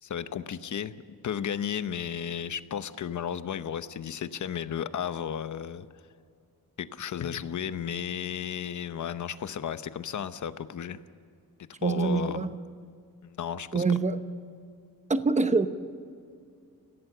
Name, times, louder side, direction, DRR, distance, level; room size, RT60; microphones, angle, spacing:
voice 1, 0.0-5.9 6.8-11.0 11.8-12.5 13.2-13.8, left 8 dB, 55° left, 12 dB, 0.9 m, -34 dB
voice 2, 11.8-12.5 13.7-14.3 15.1-15.7, right 4 dB, 20° right, 10 dB, 0.9 m, -25 dB
29.0 x 16.5 x 6.8 m, 2.4 s
wide cardioid pair, 175°, 35 cm